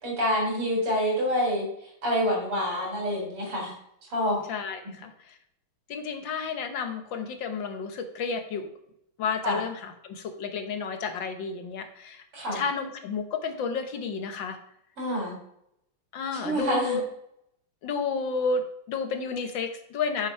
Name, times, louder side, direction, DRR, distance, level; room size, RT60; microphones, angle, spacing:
voice 1, 0.0-1.7 2.0-3.7 4.1-4.4 9.4-9.6 12.3-12.6 15.0-15.4 16.3-17.0, equal, 85° right, -2 dB, 4.7 m, -27 dB
voice 2, 4.5-5.3 5.9-8.7 9.2-12.2 12.5-14.6 16.1-17.0 17.8-20.3, left 5 dB, 65° left, 7 dB, 1.6 m, -31 dB
7.1 x 6.9 x 5.6 m, 0.74 s
omnidirectional pair, 2.4 m